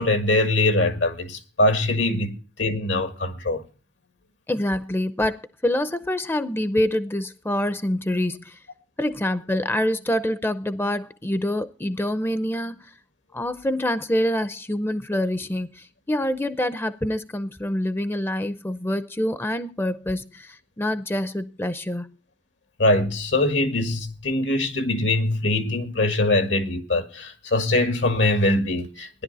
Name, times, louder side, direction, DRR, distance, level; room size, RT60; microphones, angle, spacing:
voice 1, 0.0-3.6 22.8-29.2, left 2 dB, 75° left, 1.8 m, -22 dB
voice 2, 4.5-8.6 9.0-12.9 13.3-22.1, left 1 dB, 10° left, 0.6 m, -26 dB
16.0 x 10.5 x 4.1 m
head